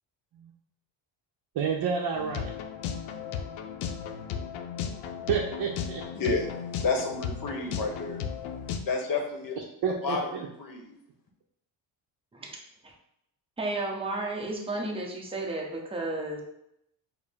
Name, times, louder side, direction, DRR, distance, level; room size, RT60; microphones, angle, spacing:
voice 1, 1.6-2.5 5.3-6.0 9.8-10.4, right 6 dB, 55° right, -1 dB, 0.6 m, -29 dB
sound 1, 2.1-8.8, left 7 dB, 85° left, 0.6 m, -35 dB
voice 2, 6.1-6.5 6.8-8.2 8.9-9.6 10.0-11.0, left 4 dB, 45° left, 2 dB, 0.8 m, -30 dB
voice 3, 13.6-16.4, right 2 dB, 10° right, -1 dB, 0.7 m, -33 dB
4.6 x 2.0 x 3.5 m, 0.77 s
cardioid pair, 115°, 46 cm